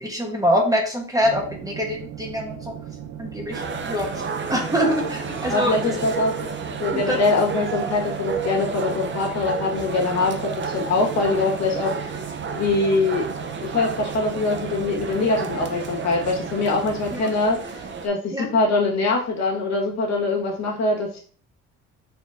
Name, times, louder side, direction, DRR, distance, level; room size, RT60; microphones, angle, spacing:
voice 1, 0.0-2.6 3.2-4.1 4.5-5.9 6.9-7.2 17.1-17.2 18.3-18.5, equal, 10° right, 0 dB, 1.0 m, -24 dB
sound 1, 1.2-17.2, right 10 dB, 85° right, 0.6 m, -38 dB
sound 2, 3.5-18.1, right 5 dB, 40° right, 0.6 m, -32 dB
voice 2, 5.5-6.4 6.8-12.2 12.6-13.3 13.6-21.2, left 3 dB, 60° left, -1 dB, 1.4 m, -23 dB
4.2 x 3.2 x 2.5 m, 0.44 s
cardioid pair, 90°, 30 cm